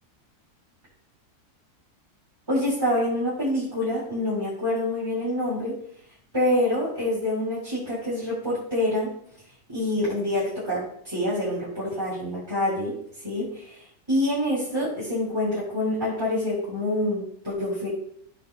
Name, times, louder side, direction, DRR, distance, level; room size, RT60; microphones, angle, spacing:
voice 1, 2.5-5.7 6.3-9.1 9.7-13.0 13.2-13.8 14.1-17.9, left 1 dB, 15° right, -8 dB, 3.7 m, -26 dB
14.0 x 6.6 x 2.2 m, 0.66 s
omnidirectional pair, 1.7 m